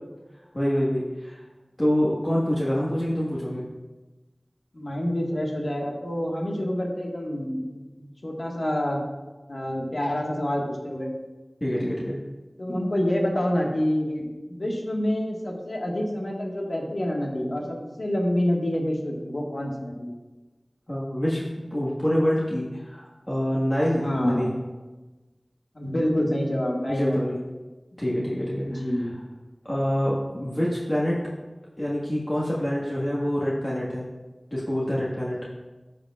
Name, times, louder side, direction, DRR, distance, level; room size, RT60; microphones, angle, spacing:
voice 1, 0.5-1.4 1.8-3.6 11.6-12.2 20.9-24.5 26.9-27.4 28.0-29.1 29.6-31.2 31.8-34.1 34.5-35.4, equal, 35° left, -7 dB, 1.6 m, -26 dB
voice 2, 4.7-9.0 9.5-11.1 12.6-20.1 24.0-24.5 25.7-27.4 28.6-29.2, left 1 dB, 70° left, -1 dB, 1.6 m, -27 dB
13.0 x 6.9 x 2.4 m, 1.2 s
wide cardioid pair, 45°, 0 cm